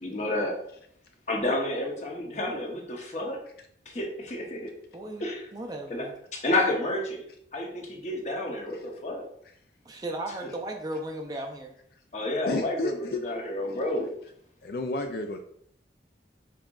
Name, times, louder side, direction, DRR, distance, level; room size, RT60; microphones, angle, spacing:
voice 1, 0.0-0.5 1.3-3.4 3.9-4.6 5.2-5.5 5.9-6.0 6.3-7.2 7.5-9.2 10.4-10.5 12.1-14.1, left 1 dB, 40° left, 0 dB, 0.9 m, -30 dB
voice 2, 4.9-6.1 9.9-11.7, right 1 dB, 20° right, 2 dB, 0.5 m, -36 dB
voice 3, 12.5-13.2 14.6-15.4, left 2 dB, 55° left, 5 dB, 0.4 m, -31 dB
5.6 x 3.7 x 2.4 m, 0.69 s
head